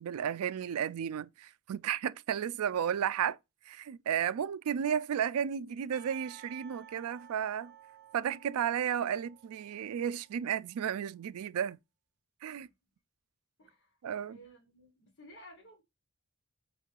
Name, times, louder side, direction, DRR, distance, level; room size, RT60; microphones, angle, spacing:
voice 1, 0.0-3.4 3.7-7.7 8.1-11.8 12.4-12.7 14.0-14.4, right 8 dB, 75° right, 0.3 m, -33 dB
Percussion / Church bell, 5.9-10.3, right 10 dB, 40° right, 1.1 m, -55 dB
voice 2, 13.6-14.0 14.3-15.8, equal, 55° left, 1.2 m, -55 dB
5.3 x 3.1 x 2.4 m
head